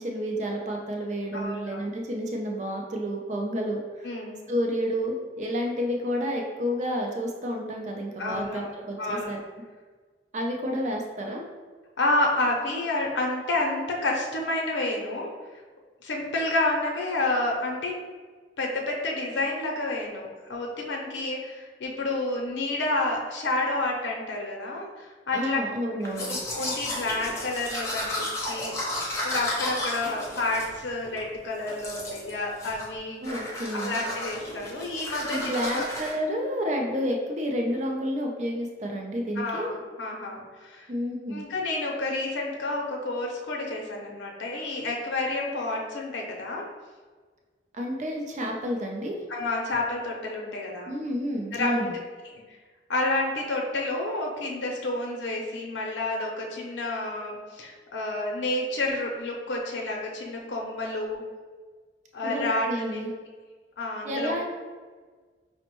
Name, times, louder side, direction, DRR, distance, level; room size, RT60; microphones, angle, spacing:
voice 1, 0.0-4.1 4.5-9.4 10.3-11.4 25.3-26.3 33.2-34.0 35.3-39.7 40.9-41.4 47.7-49.2 50.9-52.0 62.2-63.1 64.0-64.4, equal, 40° right, 1 dB, 0.4 m, -30 dB
voice 2, 1.3-1.8 4.0-4.5 8.2-8.7 9.0-9.4 12.0-15.3 16.0-18.0 18.6-25.6 26.2-28.7 29.2-33.2 33.8-35.9 39.4-40.9 41.3-46.7 49.3-50.9 51.5-52.0 52.2-52.4 52.9-61.2 62.1-63.0 63.8-64.3, left 2 dB, 80° left, 0 dB, 0.6 m, -29 dB
Domestic sounds home sounds, 26.0-31.3 31.7-32.3 32.6-33.0 33.2-36.1, left 1 dB, 15° left, 0.6 m, -33 dB
5.2 x 2.1 x 2.9 m, 1.5 s
head